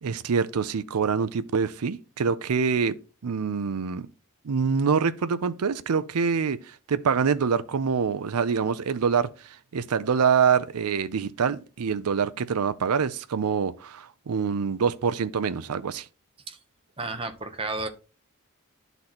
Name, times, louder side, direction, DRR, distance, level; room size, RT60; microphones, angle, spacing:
voice 1, 0.0-3.0 3.2-4.1 4.4-16.1, right 6 dB, 85° right, 0.5 m, -25 dB
voice 2, 17.0-17.9, right 3 dB, 25° right, 0.7 m, -32 dB
11.5 x 4.0 x 2.9 m
head